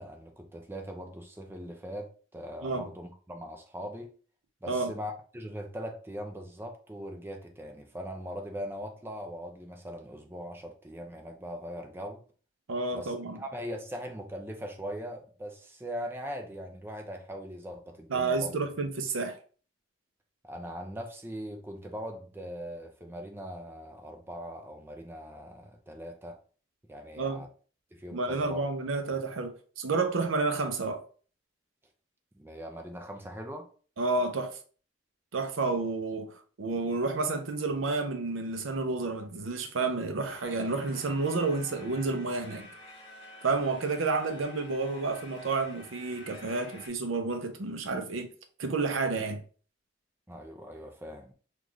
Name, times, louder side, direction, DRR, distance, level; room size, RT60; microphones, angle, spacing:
voice 1, 0.0-4.1 4.6-12.2 12.9-18.6 20.4-26.4 26.9-27.5 27.9-28.7 32.4-33.7 50.3-51.3, equal, 10° right, 0.4 m, -40 dB
voice 2, 12.7-13.4 18.1-19.4 27.2-27.4 28.1-31.0 34.0-34.5 35.3-36.3 36.6-42.7 43.4-48.3 48.6-49.4, right 3 dB, 85° right, 0.6 m, -30 dB
sound 1, 40.3-46.9, left 1 dB, 30° left, 1.2 m, -50 dB
3.8 x 2.4 x 3.1 m
head